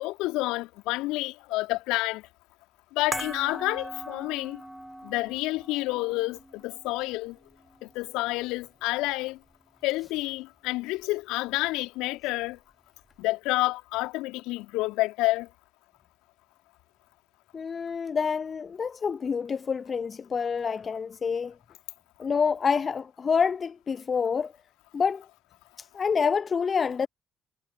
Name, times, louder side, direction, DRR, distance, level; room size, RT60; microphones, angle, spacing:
voice 1, 0.0-2.2 2.9-4.6 5.0-7.4 7.8-9.4 9.8-12.6 13.2-15.5, left 20 dB, 70° left, 2.4 m, -29 dB
sound 1, 3.1-9.5 9.8-9.9, right 1 dB, 5° right, 2.2 m, -41 dB
voice 2, 17.5-21.5 22.2-24.5 24.9-25.3 25.8-27.1, left 6 dB, 40° left, 0.7 m, -27 dB
figure-of-eight pair, 45°, 0 cm